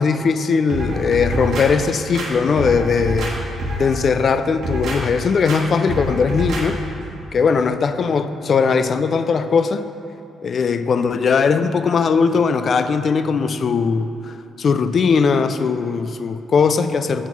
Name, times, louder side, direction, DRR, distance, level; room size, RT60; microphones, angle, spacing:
voice 1, 0.0-3.3 3.8-6.8 7.3-9.8 10.4-17.3, left 5 dB, 50° left, 10 dB, 0.3 m, -19 dB
sound 1, 0.7-1.7 2.1-3.3 3.6-4.0 4.4-5.0 5.5-5.6 5.9-6.6 7.0-7.1, equal, 75° right, 1.1 m, -26 dB
6.0 x 4.6 x 5.4 m, 2.8 s
cardioid pair, 90°, 0 cm